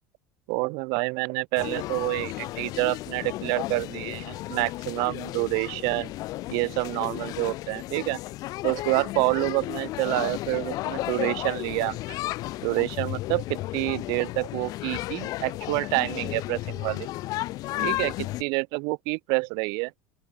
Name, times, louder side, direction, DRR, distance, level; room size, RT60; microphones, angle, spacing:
voice 1, 0.5-6.1 6.5-8.2 8.6-12.0 12.6-17.1 17.8-18.1 18.4-19.9, right 32 dB, 65° right, 1.9 m, -28 dB
sound 1, 1.6-18.4, left 17 dB, 55° left, 2.0 m, -33 dB
open air
supercardioid pair, 130°, 8 cm